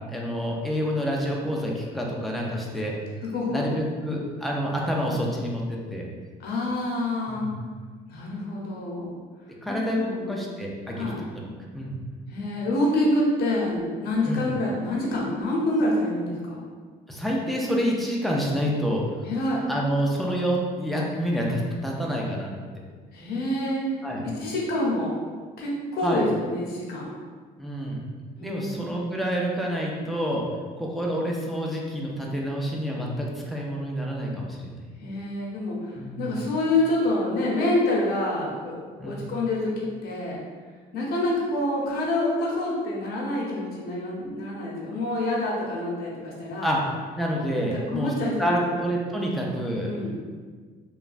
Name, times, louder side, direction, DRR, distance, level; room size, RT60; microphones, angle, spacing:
voice 1, 0.1-2.9 3.5-6.1 7.3-7.5 9.6-11.5 11.7-12.0 14.2-14.5 17.1-19.0 19.7-22.5 24.0-24.2 26.0-26.2 27.6-28.0 28.4-30.4 30.8-34.7 36.0-36.3 39.0-39.2 46.6-46.8 47.2-48.1 48.4-49.9, equal, ahead, -2 dB, 0.4 m, -28 dB
voice 2, 3.3-3.6 6.4-7.5 8.1-9.1 9.7-10.5 10.9-11.2 12.3-16.6 19.3-19.6 23.1-25.1 25.6-27.1 28.4-28.8 35.0-38.7 39.0-40.4 40.9-46.7 47.7-48.8 49.8-50.1, left 1 dB, 70° left, -4 dB, 0.8 m, -27 dB
3.1 x 2.2 x 2.4 m, 1.5 s
cardioid pair, 110°, 17 cm